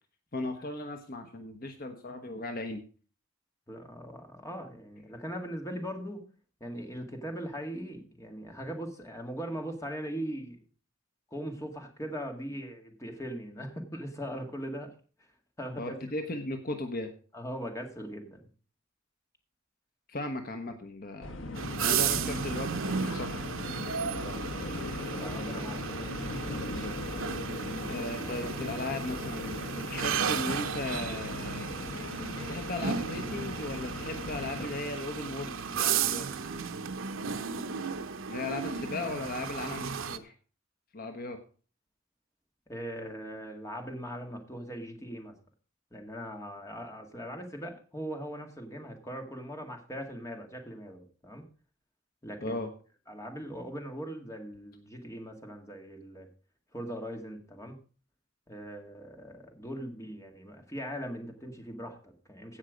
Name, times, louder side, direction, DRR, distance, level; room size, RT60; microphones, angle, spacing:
voice 1, 0.3-2.8 15.8-17.1 20.1-23.4 26.8-27.0 27.9-31.7 32.5-36.3 38.3-40.3 40.9-41.4 52.4-52.7, left 2 dB, 45° left, 6 dB, 1.1 m, -37 dB
voice 2, 3.7-6.3 6.6-10.6 11.3-14.9 15.6-15.9 17.3-18.4 23.9-24.8 25.1-26.6 42.7-45.3 45.9-51.4 52.2-52.6 53.1-56.3 56.7-57.8 58.5-62.6, equal, 15° left, 3 dB, 2.0 m, -40 dB
sound 1, 21.2-34.7, left 2 dB, 65° left, 1.4 m, -39 dB
sound 2, 21.6-40.2, right 6 dB, 75° right, 0.8 m, -34 dB
16.0 x 5.7 x 5.1 m, 0.39 s
head